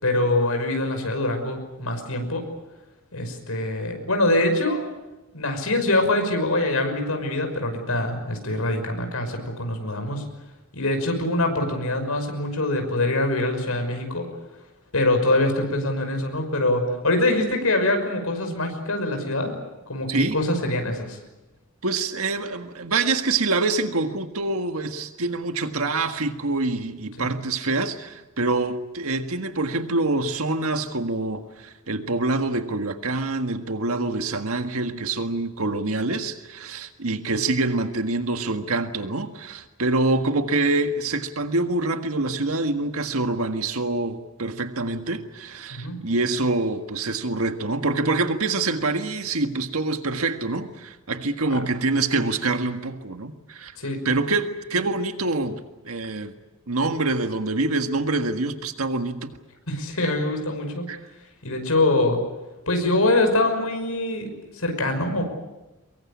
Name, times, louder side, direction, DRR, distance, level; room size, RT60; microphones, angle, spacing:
voice 1, 0.0-2.4 3.1-4.9 5.3-10.3 10.7-14.3 14.9-19.6 19.9-21.2 27.2-27.3 45.7-46.0 51.5-51.7 53.8-54.0 59.7-60.8 61.4-62.2 62.7-64.3 64.5-65.2, left 2 dB, 90° left, 5 dB, 5.8 m, -24 dB
voice 2, 21.8-53.8 54.0-56.3 56.7-59.4 60.9-61.0, right 3 dB, 85° right, 7 dB, 1.7 m, -25 dB
24.0 x 22.5 x 8.6 m, 1.1 s
head